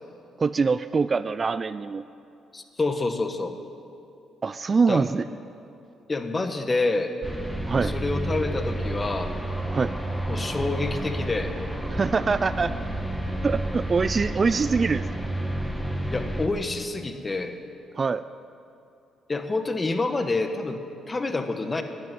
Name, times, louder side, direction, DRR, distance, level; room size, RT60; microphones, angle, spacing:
voice 1, 0.4-2.0 4.4-5.3 7.7-7.9 9.7-9.9 11.9-12.7 13.4-15.0 18.0-18.2, right 4 dB, 35° right, 15 dB, 0.3 m, -24 dB
voice 2, 2.5-3.6 4.9-5.1 6.1-7.1 7.8-9.3 10.3-11.5 16.0-17.6 19.3-20.8 21.1-21.8, left 3 dB, 25° left, 7 dB, 1.2 m, -27 dB
sound 1, 7.2-16.5, right 1 dB, ahead, 1.5 m, -30 dB
12.0 x 11.0 x 9.2 m, 2.6 s
cardioid pair, 90°, 0 cm